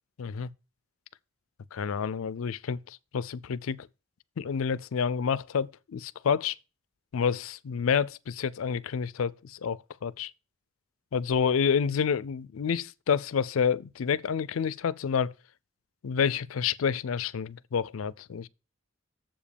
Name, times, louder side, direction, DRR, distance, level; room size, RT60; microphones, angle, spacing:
voice 1, 0.2-0.5 1.7-3.9 4.4-6.6 7.1-10.3 11.1-15.3 16.0-18.5, left 6 dB, 85° left, 0.4 m, -29 dB
7.2 x 5.1 x 6.8 m
head